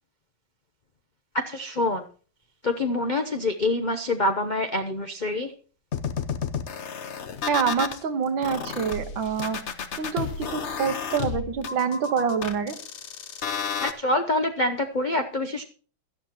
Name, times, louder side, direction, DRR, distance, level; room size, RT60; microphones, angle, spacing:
voice 1, 1.3-2.1 2.6-5.5 13.8-15.6, left 2 dB, 75° left, 5 dB, 0.4 m, -26 dB
sound 1, 5.9-8.0 8.4-13.9, left 7 dB, 50° left, 0.8 m, -31 dB
voice 2, 7.5-9.6 10.0-12.8, right 6 dB, 80° right, 9 dB, 1.9 m, -26 dB
17.0 x 12.0 x 2.9 m, 0.40 s
omnidirectional pair, 2.1 m